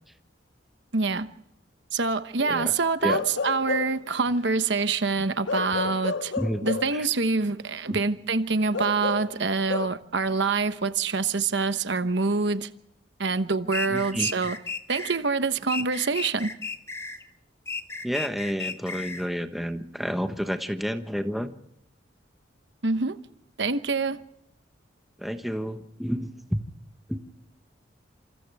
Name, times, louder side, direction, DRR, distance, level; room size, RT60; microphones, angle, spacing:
voice 1, 0.9-1.3 1.9-6.3 6.6-12.7 13.2-14.6 14.9-16.5 22.8-23.2 23.6-24.2, right 4 dB, 70° right, 1.0 m, -26 dB
voice 2, 2.4-2.8 3.0-3.2 6.4-7.1 7.9-8.0 13.9-14.3 18.0-21.5 25.2-26.6 27.1-27.2, equal, ahead, 1.2 m, -30 dB
Bark / Livestock farm animals working animals, 3.1-4.1 5.5-7.0 8.7-9.9, left 4 dB, 80° left, 0.7 m, -30 dB
sound 1, 13.7-15.2 15.7-17.2 17.7-19.3, left 4 dB, 15° left, 1.6 m, -34 dB
28.0 x 27.5 x 3.5 m
head